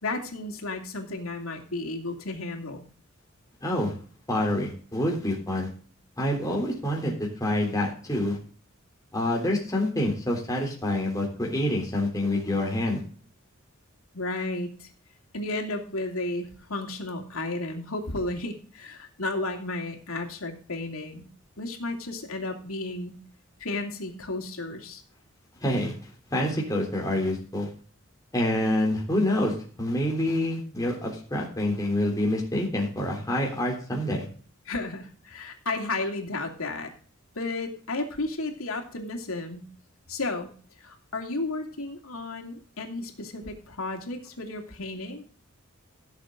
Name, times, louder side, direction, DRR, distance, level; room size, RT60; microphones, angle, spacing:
voice 1, 0.0-2.8 14.1-14.9 15.3-21.3 21.6-23.2 23.6-25.0 34.7-36.9 37.3-39.6 40.1-40.5 40.8-45.2, left 2 dB, 80° left, 3 dB, 2.8 m, -33 dB
voice 2, 3.6-3.9 4.3-5.7 6.2-8.4 9.1-13.0 25.6-25.9 26.3-27.7 28.3-34.3, left 1 dB, 15° left, -2 dB, 3.5 m, -27 dB
16.5 x 7.4 x 3.8 m, 0.42 s
head